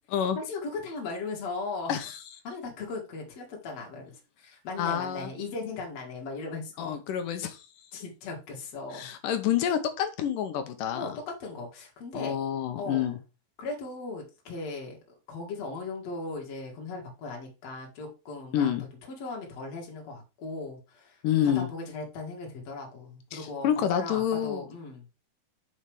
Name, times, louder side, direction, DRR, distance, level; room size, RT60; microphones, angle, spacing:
voice 1, 0.4-2.0 2.4-4.1 4.4-7.0 7.9-9.1 10.9-12.4 12.8-13.1 13.6-15.0 15.3-18.7 19.1-21.2 21.4-25.1, left 3 dB, 50° left, 0 dB, 3.0 m, -37 dB
voice 2, 4.8-5.3 6.8-7.6 8.9-11.1 12.1-13.2 18.5-18.8 21.2-21.7 23.3-24.7, left 9 dB, 75° left, 8 dB, 2.5 m, -28 dB
5.9 x 5.6 x 4.8 m, 0.30 s
omnidirectional pair, 4.0 m